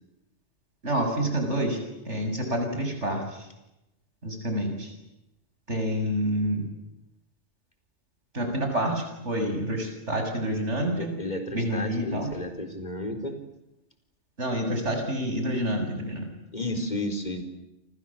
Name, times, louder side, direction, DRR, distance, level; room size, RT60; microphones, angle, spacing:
voice 1, 0.8-3.5 4.2-4.9 5.7-6.7 8.3-11.1 11.5-12.3 14.4-16.3, equal, 80° right, 4 dB, 7.6 m, -28 dB
voice 2, 10.9-13.3 16.5-17.4, left 1 dB, 40° left, 6 dB, 4.5 m, -32 dB
29.0 x 26.5 x 7.5 m, 0.92 s
omnidirectional pair, 1.2 m